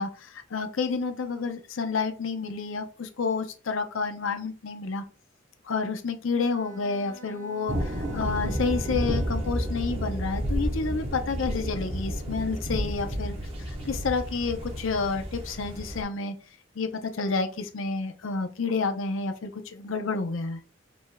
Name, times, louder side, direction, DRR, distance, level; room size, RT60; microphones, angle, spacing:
voice 1, 0.0-5.0 5.7-13.4 13.7-16.3 16.8-16.9 17.1-20.6, left 4 dB, 80° left, 7 dB, 0.6 m, -29 dB
Bowed string instrument, 6.4-10.0, right 4 dB, 60° right, 2.2 m, -50 dB
sound 1, 7.7-16.0, equal, 30° right, 1.1 m, -31 dB
5.1 x 3.4 x 2.2 m, 0.36 s
head